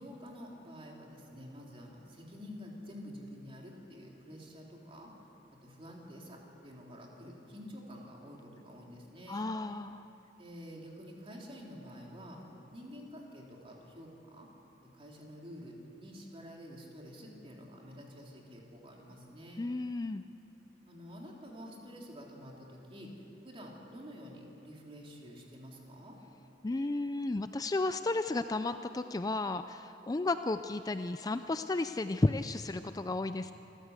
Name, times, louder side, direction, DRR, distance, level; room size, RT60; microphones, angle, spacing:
voice 1, 0.0-5.1 5.5-9.5 10.4-12.4 12.7-14.5 14.8-19.6 20.9-26.2, equal, 30° right, -1 dB, 3.5 m, -49 dB
voice 2, 9.3-10.1 19.6-20.2 26.6-33.5, left 2 dB, 20° left, 10 dB, 0.4 m, -33 dB
27.5 x 14.0 x 8.2 m, 3.0 s
head